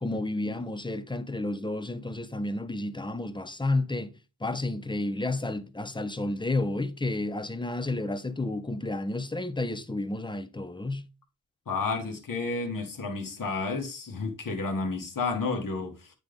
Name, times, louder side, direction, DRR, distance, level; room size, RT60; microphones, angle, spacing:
voice 1, 0.0-4.1 4.4-11.0, left 2 dB, 10° left, 0.6 m, -31 dB
voice 2, 11.7-16.1, left 4 dB, 55° left, 1.3 m, -31 dB
9.1 x 3.4 x 3.8 m
wide cardioid pair, 100°, 38 cm